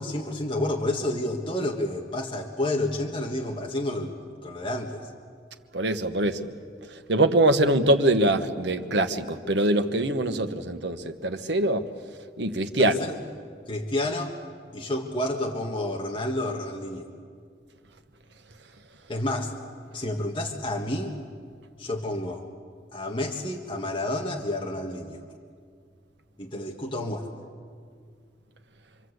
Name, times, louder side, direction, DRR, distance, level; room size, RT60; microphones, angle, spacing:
voice 1, 0.0-5.1 12.8-13.2 13.7-14.3 14.7-17.1 19.1-19.5 19.9-21.2 21.8-22.5 22.9-25.2 26.4-27.3, left 1 dB, 30° left, 1.6 m, -30 dB
voice 2, 5.7-6.5 6.9-11.9 12.4-13.0, right 1 dB, 75° right, 1.4 m, -23 dB
27.0 x 24.5 x 8.0 m
head